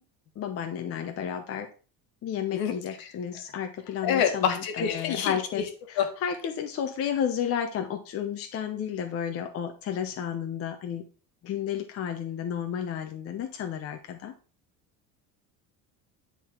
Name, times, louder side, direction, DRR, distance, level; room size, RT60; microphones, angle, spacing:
voice 1, 0.4-1.7 2.2-11.0 11.4-14.3, left 8 dB, 35° left, 5 dB, 0.7 m, -32 dB
voice 2, 4.0-5.6 6.0-6.1, left 8 dB, 65° left, 6 dB, 1.6 m, -27 dB
9.5 x 4.2 x 4.3 m, 0.37 s
cardioid pair, 160°, 39 cm